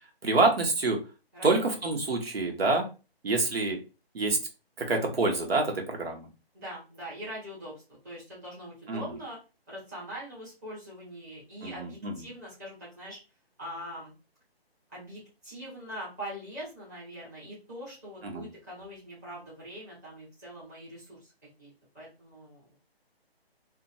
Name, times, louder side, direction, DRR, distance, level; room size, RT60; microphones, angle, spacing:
voice 1, 0.2-1.0 1.4-2.9 3.2-3.8 4.1-4.4 4.8-6.3 8.9-9.0 11.6-12.1 18.2-18.5, right 3 dB, 70° right, 3 dB, 1.1 m, -26 dB
voice 2, 1.3-1.8 6.5-9.4 9.7-13.2 13.6-14.1 14.9-21.3 21.6-22.8, equal, 15° right, -8 dB, 1.3 m, -43 dB
2.8 x 2.2 x 2.7 m, 0.31 s
hypercardioid pair, 170°, 31 cm